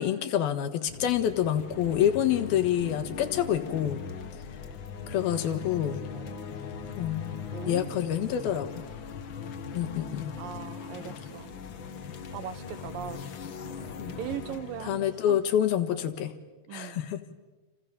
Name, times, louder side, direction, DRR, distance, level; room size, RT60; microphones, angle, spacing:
voice 1, 0.0-4.0 5.1-6.0 7.0-8.8 9.7-10.3 14.0-14.1 14.8-16.3 16.7-17.2, left 10 dB, 85° left, 9 dB, 3.4 m, -27 dB
sound 1, 0.8-16.3, left 6 dB, 60° left, 1.2 m, -40 dB
voice 2, 6.1-7.1 7.5-8.0 8.4-8.6 10.4-11.5 12.3-13.2 14.2-15.4 16.7-17.1, right 10 dB, 70° right, 13 dB, 2.7 m, -40 dB
29.5 x 29.0 x 7.0 m, 1.2 s
omnidirectional pair, 4.3 m